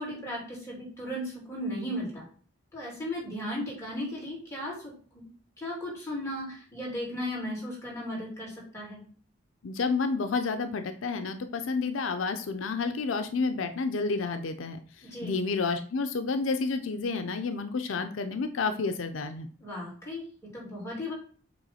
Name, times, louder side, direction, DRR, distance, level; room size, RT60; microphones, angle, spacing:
voice 1, 0.0-2.2 2.7-5.2 5.6-9.0 15.0-15.4 19.6-20.2 20.5-21.1, left 1 dB, 15° left, -5 dB, 2.7 m, -36 dB
voice 2, 9.6-19.5, left 4 dB, 85° left, 8 dB, 0.5 m, -30 dB
7.8 x 3.0 x 4.2 m, 0.43 s
head